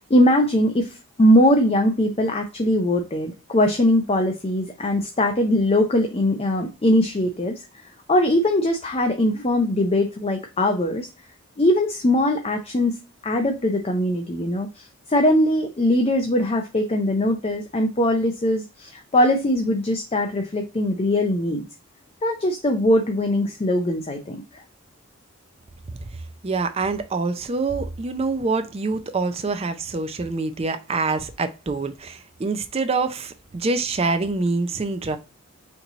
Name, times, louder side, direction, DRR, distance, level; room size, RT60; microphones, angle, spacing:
voice 1, 0.1-7.6 8.1-11.1 11.6-12.9 13.2-21.6 22.2-24.6, left 1 dB, 30° left, 0.5 m, -21 dB
voice 2, 26.4-35.2, right 3 dB, 30° right, 0.4 m, -25 dB
4.5 x 2.7 x 3.8 m
head